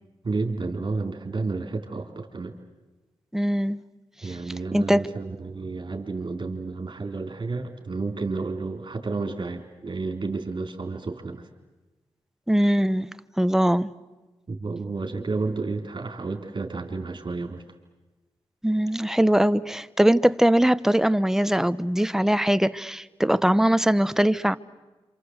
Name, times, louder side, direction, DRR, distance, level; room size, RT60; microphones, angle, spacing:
voice 1, 0.2-2.5 4.2-11.5 14.5-17.6, right 3 dB, 50° right, 4 dB, 3.8 m, -31 dB
voice 2, 3.3-3.8 4.2-4.3 4.7-5.0 12.5-13.9 18.6-24.6, right 1 dB, 5° right, 15 dB, 0.9 m, -21 dB
27.5 x 26.0 x 8.1 m, 1.1 s
cardioid pair, 45°, 11 cm